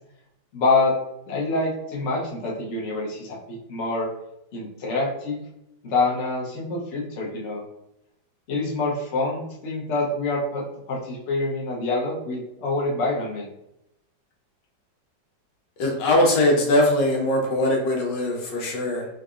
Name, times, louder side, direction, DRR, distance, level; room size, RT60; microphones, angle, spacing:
voice 1, 0.5-0.9 1.3-4.1 4.5-5.4 5.8-7.6 8.5-10.6 10.9-13.5, left 3 dB, 50° left, -3 dB, 0.9 m, -26 dB
voice 2, 15.8-19.1, left 1 dB, 80° left, 0 dB, 1.4 m, -21 dB
3.8 x 2.7 x 2.4 m, 0.83 s
omnidirectional pair, 2.0 m